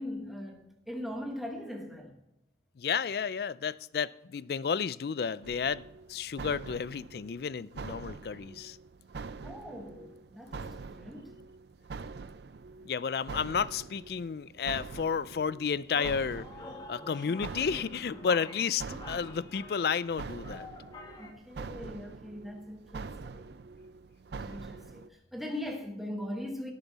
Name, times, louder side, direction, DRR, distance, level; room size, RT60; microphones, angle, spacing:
voice 1, 0.0-2.2 9.4-11.4 21.2-23.5 24.3-26.7, left 1 dB, ahead, 1.3 m, -40 dB
voice 2, 2.8-8.8 12.8-16.5 16.9-20.7, left 6 dB, 60° left, 0.4 m, -32 dB
sound 1, 5.4-25.1, right 4 dB, 70° right, 0.4 m, -45 dB
sound 2, 15.9-21.3, left 2 dB, 25° left, 1.2 m, -47 dB
17.0 x 7.0 x 4.1 m
head